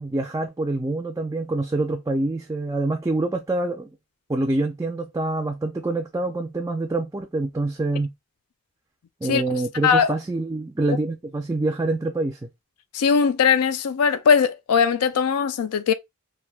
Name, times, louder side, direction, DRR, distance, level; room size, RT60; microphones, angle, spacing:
voice 1, 0.0-3.9 4.3-8.1 9.2-12.5, right 2 dB, 15° right, 0.3 m, -26 dB
voice 2, 9.8-10.1 12.9-15.9, left 6 dB, 85° left, 0.4 m, -20 dB
3.3 x 2.6 x 2.3 m
head